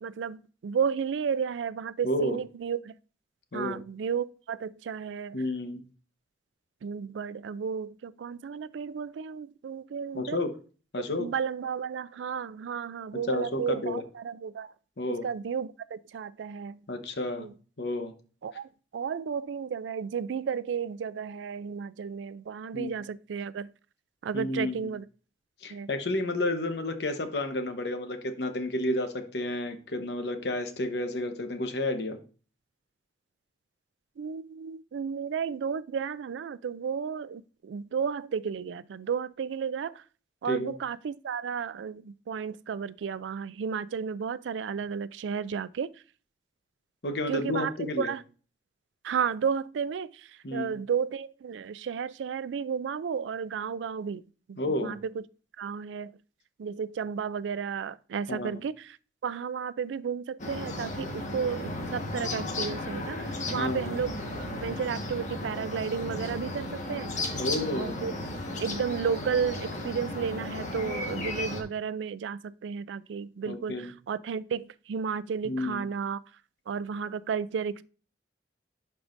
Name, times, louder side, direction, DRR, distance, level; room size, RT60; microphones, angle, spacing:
voice 1, 0.0-2.9 3.5-5.4 6.8-10.4 11.2-14.7 15.1-16.8 17.4-17.5 18.4-23.7 24.2-25.0 25.7-25.9 34.2-39.9 40.4-45.9 47.3-47.7 48.0-48.2 49.0-50.1 50.5-54.2 54.5-55.2 55.6-56.2 56.6-59.0 59.2-64.2 64.6-67.1 67.7-68.1 68.6-76.2 76.7-77.8, right 6 dB, 90° right, 0.4 m, -33 dB
voice 2, 2.0-2.4 3.5-3.8 5.3-5.8 10.1-10.5 10.9-11.3 13.1-14.0 15.0-15.3 16.9-17.5 17.8-18.1 22.7-22.9 24.3-24.9 25.6-32.2 40.4-40.7 47.0-48.1 50.4-50.7 54.6-55.0 58.3-58.6 63.6-63.9 67.4-68.0 73.4-73.9 75.4-75.9, left 1 dB, 65° left, 1.0 m, -31 dB
sound 1, 60.4-71.6, left 2 dB, 45° left, 1.4 m, -35 dB
11.5 x 4.7 x 2.6 m
head